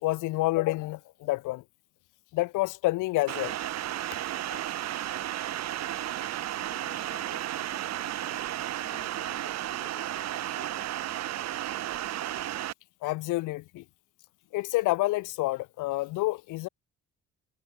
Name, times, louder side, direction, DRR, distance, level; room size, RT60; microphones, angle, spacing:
voice 1, 0.0-1.6 2.3-3.5 13.0-13.8 14.5-16.7, left 19 dB, 90° left, 0.7 m, -28 dB
sound 1, 3.3-12.7, right 13 dB, 60° right, 0.7 m, -33 dB
voice 2, 4.5-6.3 6.6-8.5 8.8-11.4, left 7 dB, 45° left, 6.4 m, -54 dB
cardioid pair, 90°, 30 cm